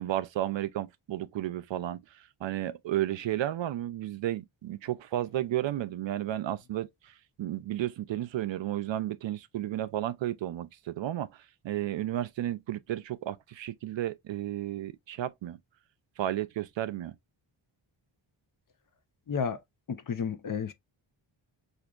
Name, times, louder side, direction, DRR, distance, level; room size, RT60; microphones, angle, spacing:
voice 1, 0.0-11.3 11.6-15.6 16.2-17.1, right 13 dB, 65° right, 0.5 m, -33 dB
voice 2, 19.3-19.6 19.9-20.7, left 6 dB, 40° left, 0.6 m, -31 dB
4.8 x 2.6 x 2.3 m
cardioid pair, 70°, 49 cm